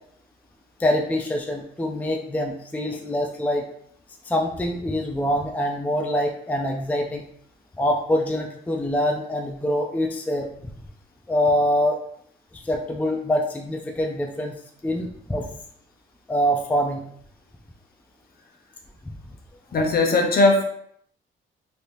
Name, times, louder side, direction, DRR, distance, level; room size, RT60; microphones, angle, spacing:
voice 1, 0.8-3.7 4.2-7.2 7.8-10.5 11.3-12.0 12.5-14.6 14.8-15.5 16.3-17.0, equal, 10° left, 2 dB, 0.4 m, -24 dB
voice 2, 19.7-20.6, left 2 dB, 50° left, 3 dB, 0.7 m, -18 dB
3.3 x 2.8 x 2.5 m, 0.67 s
cardioid pair, 90°, 20 cm